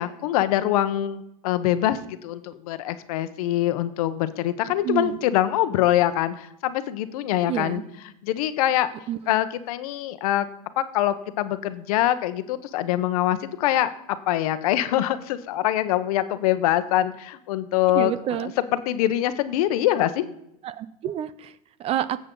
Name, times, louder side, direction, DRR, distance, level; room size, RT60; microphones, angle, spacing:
voice 1, 0.0-7.8 8.2-8.9 9.3-10.5 10.8-13.9 14.3-18.1 18.4-20.3, left 13 dB, 75° left, 12 dB, 1.0 m, -24 dB
voice 2, 4.8-5.2 7.5-7.9 9.1-9.3 17.9-18.5 20.6-22.2, right 11 dB, 30° right, 16 dB, 0.5 m, -29 dB
17.5 x 7.8 x 3.9 m, 0.80 s
supercardioid pair, 140°, 19 cm